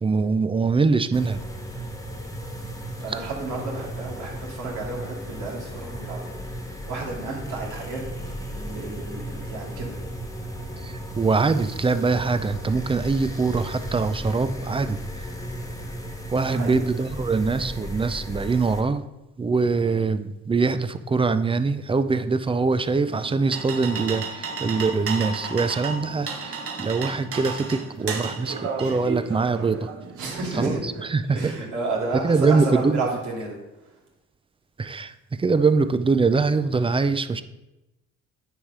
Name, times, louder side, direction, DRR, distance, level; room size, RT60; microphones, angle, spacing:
voice 1, 0.0-1.4 10.8-15.3 16.3-19.0 19.4-29.9 30.6-31.5 32.1-33.0 34.8-37.4, right 4 dB, 20° right, 11 dB, 0.4 m, -23 dB
sound 1, 1.1-18.8, equal, 10° left, 1.0 m, -35 dB
voice 2, 3.0-6.3 6.9-10.0 16.4-16.8 30.2-30.8 31.2-33.9, right 3 dB, 80° right, -3 dB, 2.6 m, -32 dB
sound 2, 23.1-31.1, right 5 dB, 50° right, 1.1 m, -33 dB
9.2 x 3.3 x 5.5 m, 0.98 s
cardioid pair, 90°, 30 cm